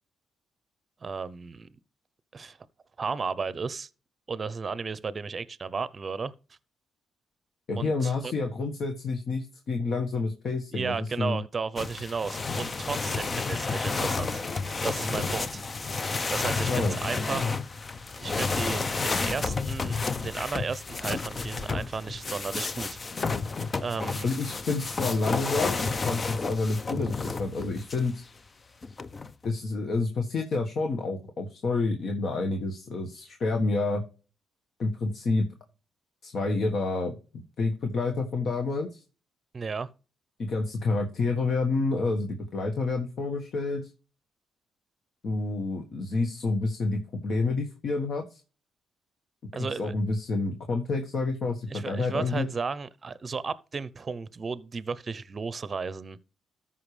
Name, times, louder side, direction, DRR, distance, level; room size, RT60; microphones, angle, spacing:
voice 1, 1.0-1.7 2.3-2.6 3.0-3.9 4.3-6.3 7.8-8.3 10.7-14.4 14.8-15.6 16.3-17.6 18.2-23.0 23.8-24.3 39.5-39.9 49.5-49.9 51.7-56.2, right 5 dB, 35° right, 0.7 m, -34 dB
voice 2, 7.7-11.4 16.7-17.0 24.2-28.2 29.4-34.0 34.8-35.5 36.2-39.0 40.4-43.9 45.2-48.4 49.6-52.5, left 3 dB, 55° left, 1.5 m, -29 dB
sound 1, 11.8-28.1 28.8-29.5, left 4 dB, 35° left, 0.6 m, -31 dB
13.5 x 5.6 x 3.3 m
cardioid pair, 90°, 0 cm